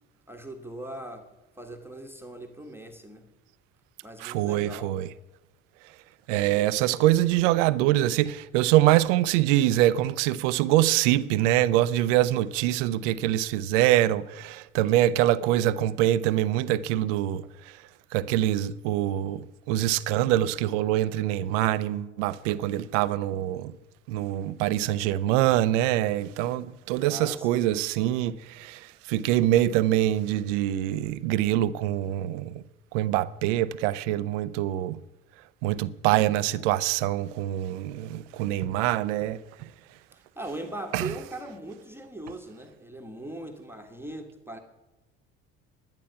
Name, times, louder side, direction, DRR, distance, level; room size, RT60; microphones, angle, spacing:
voice 1, 0.3-1.3 1.6-3.3 4.0-5.0 27.1-27.7 40.4-44.6, right 1 dB, 5° right, 1.3 m, -39 dB
voice 2, 4.2-5.1 6.3-17.4 18.1-23.7 24.1-28.8 29.1-32.6 32.9-35.0 35.6-39.4 40.9-41.1, right 14 dB, 80° right, 0.6 m, -24 dB
10.5 x 10.5 x 5.7 m
hypercardioid pair, 70°, 36 cm